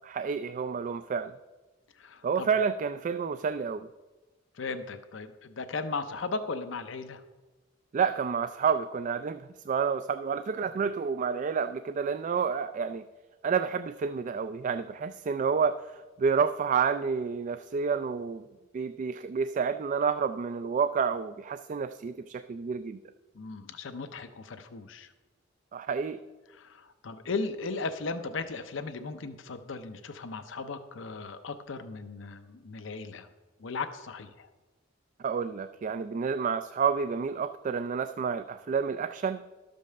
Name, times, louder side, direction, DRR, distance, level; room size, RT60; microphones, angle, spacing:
voice 1, 0.0-1.4 2.2-3.9 7.9-13.1 13.4-18.4 18.7-23.0 25.7-26.2 35.2-39.4, right 6 dB, 40° right, 11 dB, 0.3 m, -29 dB
voice 2, 2.0-2.5 4.5-7.2 23.3-25.1 26.5-33.3 33.6-34.5, left 4 dB, 70° left, 9 dB, 0.6 m, -37 dB
12.5 x 5.3 x 6.6 m, 1.2 s
head